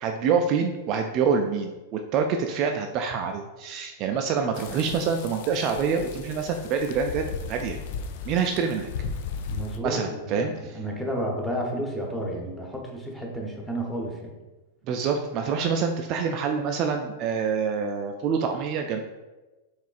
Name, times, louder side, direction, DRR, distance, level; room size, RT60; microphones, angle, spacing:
voice 1, 0.0-7.8 8.3-8.9 9.8-10.5 14.9-19.0, right 6 dB, 40° right, 4 dB, 0.3 m, -26 dB
sound 1, 4.5-9.8, left 5 dB, 55° left, 0.3 m, -36 dB
voice 2, 9.5-14.3, equal, 5° left, -2 dB, 0.9 m, -31 dB
4.6 x 3.1 x 2.4 m, 1.1 s
figure-of-eight pair, 95°, 0 cm